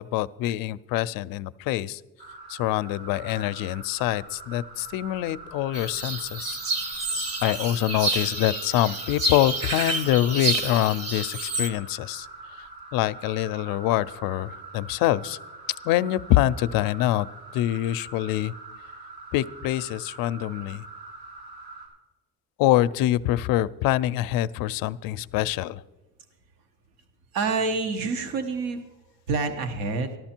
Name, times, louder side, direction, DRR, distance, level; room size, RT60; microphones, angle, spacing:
voice 1, 0.0-2.0 2.5-7.0 7.4-12.3 12.6-15.4 15.8-17.3 17.5-18.5 19.3-20.8 22.6-25.8, left 14 dB, 70° left, 16 dB, 0.5 m, -25 dB
sound 1, 2.2-21.9, right 3 dB, 90° right, 4.8 m, -44 dB
sound 2, 5.7-11.7, right 2 dB, 40° right, 1.3 m, -29 dB
voice 2, 27.3-28.8 29.3-30.2, right 4 dB, 70° right, 8 dB, 1.2 m, -27 dB
14.0 x 12.5 x 4.4 m, 1.1 s
cardioid pair, 160°, 36 cm